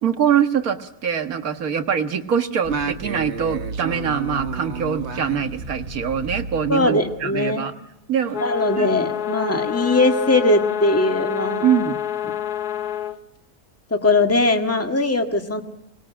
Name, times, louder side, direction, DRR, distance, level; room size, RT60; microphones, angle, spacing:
voice 1, 0.0-7.7 8.1-8.4 8.8-8.9 11.6-12.0, right 8 dB, 70° right, 8 dB, 1.9 m, -23 dB
Singing, 2.6-7.4, right 4 dB, 50° right, 1.4 m, -31 dB
voice 2, 6.7-7.7 8.4-11.7 13.9-15.6, left 2 dB, 10° left, 5 dB, 1.7 m, -20 dB
sound 1, 8.3-13.2, left 10 dB, 85° left, 1.6 m, -27 dB
25.0 x 20.5 x 9.0 m, 0.92 s
omnidirectional pair, 1.6 m